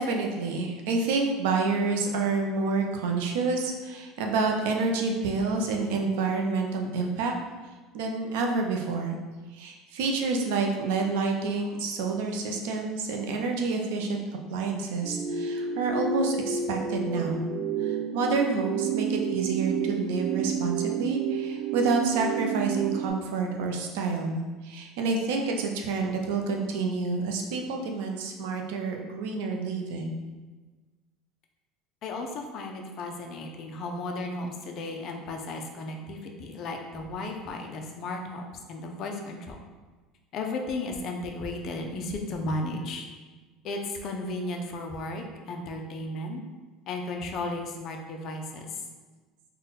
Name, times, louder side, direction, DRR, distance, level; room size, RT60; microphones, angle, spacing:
voice 1, 0.0-7.3 7.9-9.2 9.5-14.2 14.5-17.5 17.8-30.2, right 4 dB, 90° right, 2 dB, 0.5 m, -28 dB
sound 1, 15.0-23.1, right 6 dB, 40° right, 0.4 m, -30 dB
voice 2, 32.0-39.6 40.3-43.1 43.6-46.4 46.9-48.8, left 2 dB, 40° left, 3 dB, 0.5 m, -34 dB
3.8 x 2.2 x 3.9 m, 1.3 s
cardioid pair, 155°, 0 cm